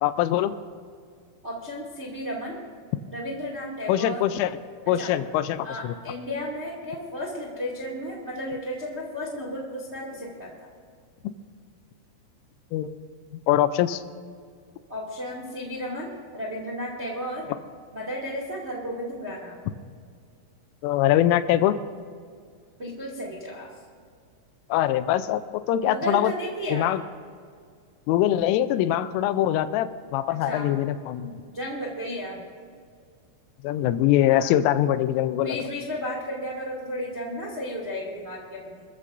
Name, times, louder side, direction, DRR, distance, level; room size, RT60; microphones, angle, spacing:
voice 1, 0.0-0.5 3.9-4.5 4.9-5.9 12.7-12.9 13.5-14.0 20.8-21.8 24.7-26.3 26.7-27.0 28.1-31.3 33.6-35.6, left 12 dB, 85° left, 11 dB, 3.1 m, -23 dB
voice 2, 1.4-2.6 3.1-4.2 4.9-5.1 5.6-10.7 14.9-16.1 16.3-17.5 17.9-19.6 22.8-23.7 25.8-26.9 30.4-30.7 31.2-32.4 34.3-34.5 35.4-38.8, equal, 40° right, -2 dB, 0.9 m, -33 dB
26.5 x 14.0 x 2.6 m, 2.1 s
omnidirectional pair, 5.7 m